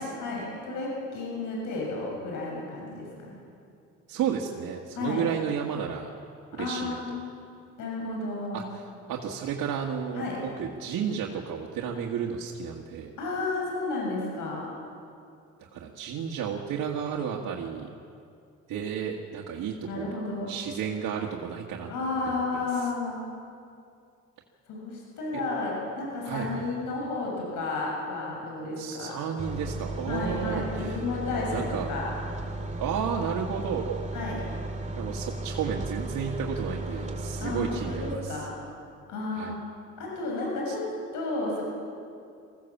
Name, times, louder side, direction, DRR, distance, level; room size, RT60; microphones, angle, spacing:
voice 1, 0.0-3.4 5.0-5.2 6.5-7.2 7.8-8.7 10.1-10.4 13.2-14.7 19.8-20.5 21.9-23.2 24.7-29.2 30.1-32.1 34.1-34.4 37.4-38.5 39.1-39.6 40.0-40.8 41.1-41.6, left 3 dB, 85° left, -2 dB, 6.9 m, -32 dB
voice 2, 4.1-6.1 6.6-7.2 8.5-8.6 9.1-13.1 15.7-17.9 18.7-20.2 20.5-21.9 22.3-22.6 26.2-26.7 28.8-30.9 31.5-31.9 32.8-34.1 35.0-38.4 39.3-39.5 40.7-40.8, right 7 dB, 85° right, -2 dB, 1.8 m, -32 dB
sound 1, 29.4-38.1, right 2 dB, 25° right, 2.4 m, -35 dB
24.0 x 16.0 x 7.3 m, 2.4 s
cardioid pair, 90°, 30 cm